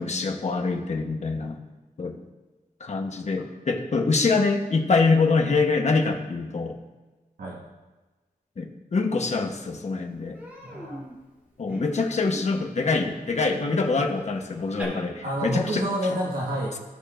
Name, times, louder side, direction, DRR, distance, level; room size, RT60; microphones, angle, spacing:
voice 1, 0.0-1.6 2.0-2.2 2.8-6.8 8.6-10.4 11.6-15.9, left 4 dB, 50° left, 4 dB, 1.1 m, -25 dB
Human voice, 9.3-9.4 9.7-9.9 10.3-14.8, equal, 10° right, 3.1 m, -43 dB
voice 2, 10.6-11.0 15.2-16.8, right 1 dB, 80° right, -4 dB, 1.6 m, -28 dB
16.5 x 6.6 x 2.5 m, 1.2 s
wide cardioid pair, 135°, 15 cm